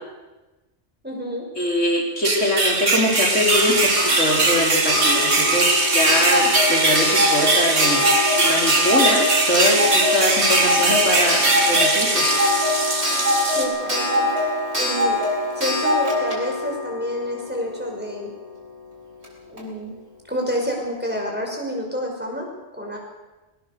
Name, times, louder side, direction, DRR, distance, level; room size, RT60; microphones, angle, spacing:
voice 1, 1.0-1.4 13.4-14.3 14.7-15.2 15.5-18.3 19.4-19.9 20.3-23.0, equal, 10° right, -1 dB, 5.5 m, -28 dB
voice 2, 1.6-12.4, left 1 dB, 90° left, -1 dB, 4.5 m, -23 dB
sound 1, 2.2-13.0, right 3 dB, 90° right, 2.6 m, -21 dB
sound 2, 3.1-13.6, right 1 dB, 45° right, 3.3 m, -27 dB
Clock, 3.5-18.1 19.2-19.3 19.6-19.7, left 1 dB, 65° right, 6.3 m, -23 dB
21.5 x 19.5 x 6.8 m, 1.1 s
omnidirectional pair, 1.2 m